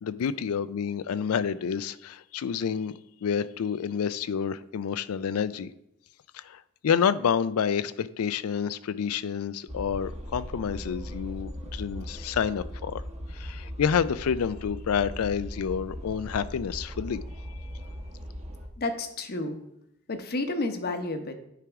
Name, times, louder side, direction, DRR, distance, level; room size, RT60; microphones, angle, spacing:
voice 1, 0.0-2.9 3.2-5.7 6.3-13.0 13.3-17.2, left 7 dB, 75° left, 16 dB, 0.4 m, -29 dB
sound 1, 9.7-18.7, equal, 30° right, 0.9 m, -39 dB
voice 2, 18.8-19.6 20.1-21.3, left 2 dB, 45° left, 7 dB, 0.9 m, -31 dB
10.0 x 4.8 x 3.5 m, 0.80 s
head